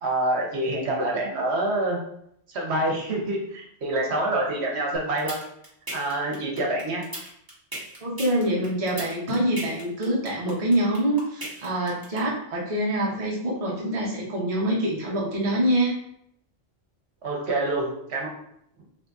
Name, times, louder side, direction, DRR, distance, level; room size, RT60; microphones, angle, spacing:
voice 1, 0.0-2.0 2.5-5.4 5.9-7.0 17.2-18.3, right 1 dB, 75° right, -1 dB, 1.1 m, -26 dB
sound 1, 4.9-12.2, right 1 dB, 20° right, 1.2 m, -36 dB
voice 2, 8.0-16.0, right 1 dB, 35° right, -3 dB, 0.8 m, -25 dB
2.8 x 2.7 x 3.4 m, 0.73 s
omnidirectional pair, 1.1 m